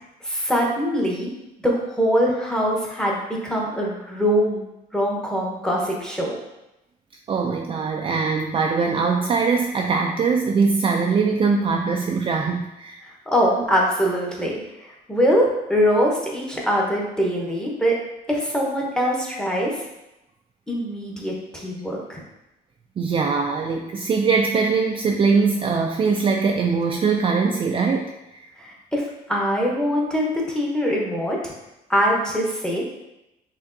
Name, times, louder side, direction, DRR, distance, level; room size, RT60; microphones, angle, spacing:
voice 1, 0.2-1.3 1.6-4.7 4.9-6.3 13.3-18.0 18.3-19.8 20.7-22.2 28.6-31.5 31.9-32.8, equal, 5° left, -3 dB, 1.0 m, -23 dB
voice 2, 7.3-13.0 23.0-28.5, right 5 dB, 30° right, 2 dB, 0.3 m, -22 dB
5.1 x 3.4 x 2.6 m, 0.92 s
cardioid pair, 110°, 17 cm